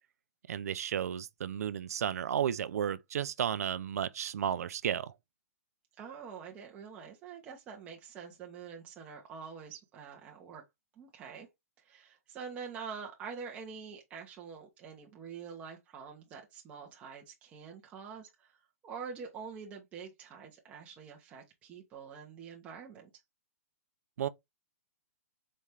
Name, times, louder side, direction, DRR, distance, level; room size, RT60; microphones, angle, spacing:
voice 1, 0.5-5.1 24.2-24.3, right 9 dB, 80° right, 0.4 m, -33 dB
voice 2, 6.0-10.6 11.0-11.5 11.8-23.1, right 6 dB, 15° right, 0.7 m, -46 dB
4.3 x 2.4 x 3.2 m
hypercardioid pair, 165°, 8 cm